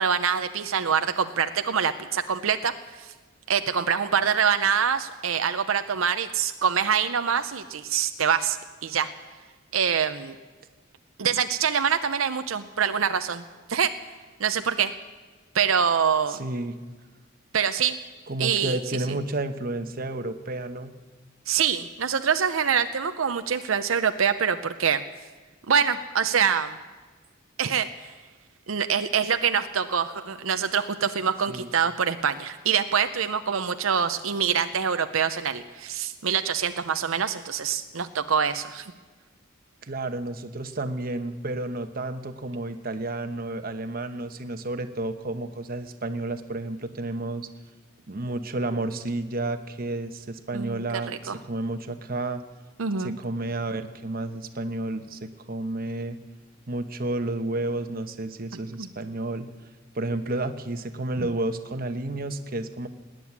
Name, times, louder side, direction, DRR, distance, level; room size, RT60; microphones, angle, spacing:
voice 1, 0.0-3.1 3.5-9.1 9.7-10.4 11.2-13.9 14.4-14.9 15.5-16.4 17.5-18.0 18.4-18.8 21.5-25.0 25.7-26.8 27.6-28.1 28.7-38.9 50.5-51.4 52.8-53.2 58.8-58.9 61.2-61.3, right 7 dB, 85° right, 9 dB, 0.7 m, -25 dB
voice 2, 16.3-16.7 18.3-20.9 31.5-31.7 39.8-47.5 48.1-52.4 53.0-56.2 56.7-59.5 59.9-62.9, right 2 dB, 45° right, 8 dB, 1.0 m, -31 dB
19.5 x 7.8 x 9.7 m, 1.3 s
head